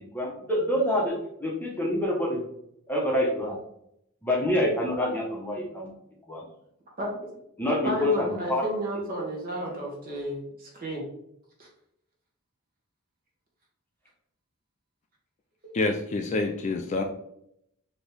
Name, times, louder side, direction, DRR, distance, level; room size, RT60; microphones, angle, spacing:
voice 1, 0.1-2.4 2.9-3.6 4.2-5.9 6.3-6.4 7.6-8.6 9.1-9.2, left 1 dB, 10° left, 1.0 m, -26 dB
voice 2, 7.8-11.0 11.6-11.7, equal, 40° right, 1.3 m, -32 dB
voice 3, 15.7-17.0, left 3 dB, 35° left, 0.3 m, -27 dB
4.2 x 2.9 x 3.3 m
head